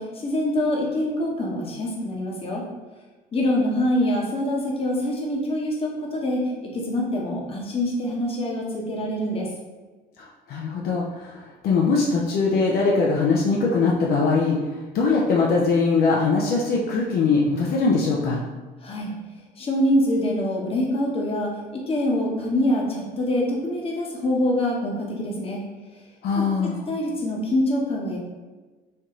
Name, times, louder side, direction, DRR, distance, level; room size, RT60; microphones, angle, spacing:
voice 1, 0.0-2.7 3.3-9.5 18.8-19.1 19.6-25.6 26.6-28.2, left 1 dB, 35° left, -2 dB, 1.0 m, -25 dB
voice 2, 10.2-14.6 14.9-18.4 26.2-26.8, left 4 dB, 65° left, -3 dB, 0.6 m, -21 dB
4.1 x 2.6 x 3.0 m, 1.3 s
cardioid pair, 110°, 17 cm